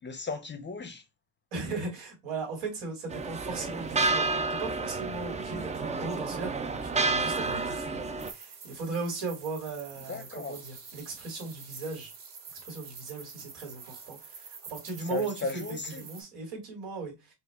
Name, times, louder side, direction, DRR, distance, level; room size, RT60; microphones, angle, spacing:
voice 1, 0.0-1.0 10.1-10.6 15.0-16.1, left 4 dB, 25° left, 0.6 m, -36 dB
voice 2, 1.5-12.1 12.6-17.3, right 4 dB, 85° right, 2.3 m, -38 dB
sound 1, 3.1-8.3, right 3 dB, 15° right, 0.3 m, -30 dB
sound 2, 8.2-16.2, right 5 dB, 60° right, 2.0 m, -47 dB
4.5 x 2.4 x 3.4 m
cardioid pair, 90°, 46 cm